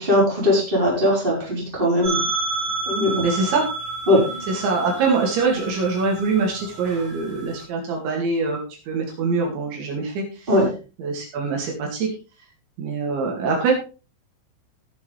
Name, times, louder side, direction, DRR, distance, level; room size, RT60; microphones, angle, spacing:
voice 1, 0.0-2.2 2.9-3.3 4.1-4.2 10.5-10.7, left 1 dB, 10° right, -3 dB, 4.7 m, -19 dB
sound 1, 2.0-7.6, right 3 dB, 50° right, 6.0 m, -30 dB
voice 2, 3.2-3.7 4.5-8.6 8.9-10.2 11.0-12.1 12.8-13.7, right 4 dB, 70° right, 0 dB, 4.7 m, -23 dB
17.5 x 7.2 x 3.4 m, 0.32 s
omnidirectional pair, 5.6 m